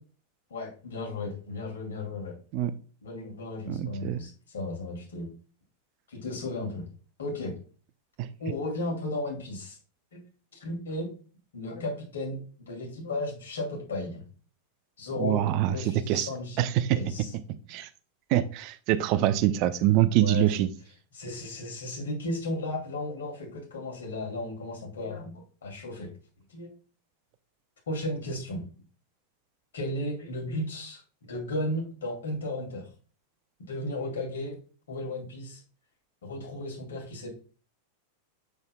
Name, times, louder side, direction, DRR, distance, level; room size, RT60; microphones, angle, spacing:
voice 1, 0.5-2.4 3.0-5.3 6.1-6.9 7.2-7.6 8.4-9.8 10.1-10.2 10.5-11.1 11.5-14.3 15.0-17.3 20.2-20.5 21.1-26.2 26.5-26.7 27.9-28.7 29.7-31.0 31.3-32.9 33.7-34.6 34.9-35.6 36.2-37.3, left 1 dB, 65° left, -1 dB, 2.6 m, -34 dB
voice 2, 3.7-4.2 8.2-8.3 15.2-15.7 16.1-16.3 16.6-17.1 17.7-17.9 18.3-20.7, right 13 dB, 45° right, 12 dB, 0.5 m, -25 dB
7.3 x 6.5 x 2.3 m, 0.38 s
figure-of-eight pair, 90°, 0 cm